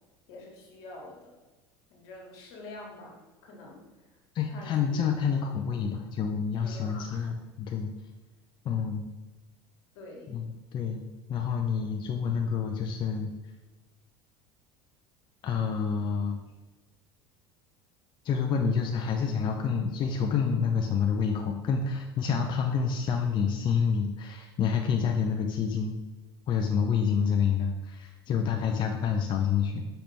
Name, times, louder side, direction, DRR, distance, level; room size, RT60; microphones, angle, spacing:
voice 1, 0.3-1.4 1.9-4.1 4.5-5.6 6.6-7.3 9.9-10.3 28.6-28.7, left 2 dB, 70° left, -1 dB, 1.5 m, -47 dB
voice 2, 4.3-7.9 8.6-9.1 10.3-10.5 10.7-13.3 15.4-16.4 18.2-26.0 26.5-29.9, left 6 dB, 40° left, 3 dB, 0.4 m, -28 dB
5.2 x 2.8 x 3.4 m, 1.2 s
hypercardioid pair, 90°, 13 cm